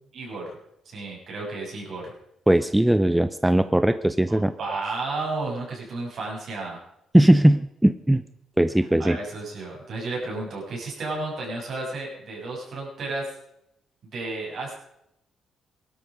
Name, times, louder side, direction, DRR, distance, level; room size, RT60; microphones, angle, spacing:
voice 1, 0.1-0.5 0.9-2.1 4.3-6.8 9.0-13.3 14.0-14.7, right 3 dB, 60° right, -2 dB, 7.2 m, -32 dB
voice 2, 2.5-4.5 7.1-8.2 8.6-9.2, right 1 dB, 5° right, 13 dB, 0.6 m, -19 dB
18.0 x 12.5 x 5.2 m, 0.80 s
cardioid pair, 90°, 0 cm